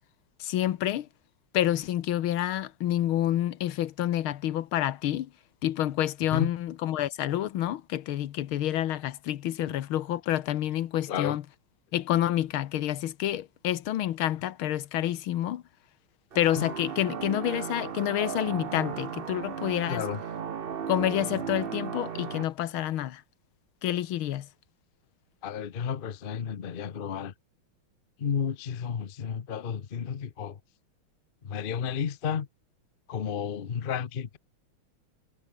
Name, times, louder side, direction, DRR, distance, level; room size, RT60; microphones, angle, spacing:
voice 1, 0.4-1.1 1.5-5.3 5.6-11.4 11.9-15.6 16.3-20.0 20.9-23.2 23.8-24.5, left 12 dB, 75° left, 1.8 m, -28 dB
sound 1, 16.3-22.4, right 7 dB, 85° right, 0.5 m, -35 dB
voice 2, 19.9-20.2 25.4-27.3 28.2-30.6 31.4-32.5 33.1-34.4, left 7 dB, 50° left, 0.6 m, -32 dB
omnidirectional pair, 2.3 m